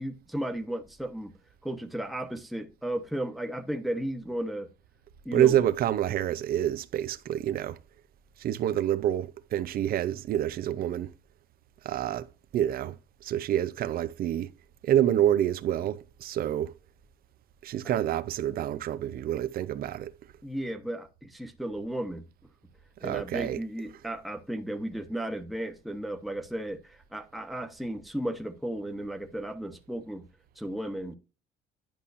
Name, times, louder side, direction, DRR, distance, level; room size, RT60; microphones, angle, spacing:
voice 1, 0.0-1.3 1.6-4.7 5.2-5.6 20.4-22.3 23.0-30.2 30.6-31.2, right 1 dB, ahead, 1.1 m, -34 dB
voice 2, 5.3-7.8 8.4-11.1 11.8-12.3 12.5-13.0 13.2-14.5 14.8-16.7 17.6-20.1 23.0-23.6, right 11 dB, 60° right, 0.7 m, -27 dB
10.5 x 5.5 x 2.6 m
cardioid pair, 110°, 17 cm